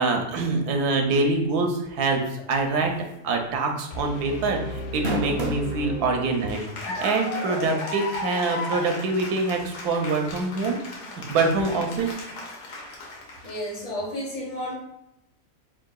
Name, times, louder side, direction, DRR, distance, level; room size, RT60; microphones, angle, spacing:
voice 1, 0.0-2.9 3.2-10.8 11.1-12.2, right 3 dB, 90° right, 3 dB, 1.2 m, -25 dB
sound 1, 3.1-3.3 3.7-3.8 4.8-5.7 6.5-6.6 8.1-8.2, right 1 dB, 60° right, 0.7 m, -28 dB
sound 2, 3.9-6.9, left 1 dB, 65° left, 0.8 m, -35 dB
Cheering / Applause, 6.2-13.8, left 2 dB, 85° left, 1.3 m, -35 dB
voice 2, 13.4-14.7, equal, 50° left, -4 dB, 1.5 m, -32 dB
3.9 x 3.7 x 2.2 m, 0.88 s
omnidirectional pair, 1.6 m